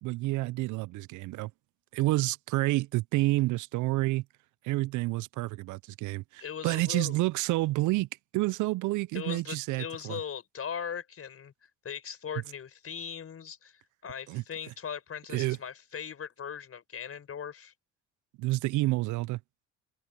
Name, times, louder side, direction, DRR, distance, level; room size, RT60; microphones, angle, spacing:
voice 1, 0.0-1.5 1.9-4.2 4.6-8.1 8.3-10.2 14.3-14.4 15.3-15.6 18.4-19.4, right 19 dB, 65° right, 0.6 m, -29 dB
voice 2, 6.4-7.2 9.1-17.7, left 7 dB, 45° left, 5.4 m, -39 dB
open air
supercardioid pair, 70°, 33 cm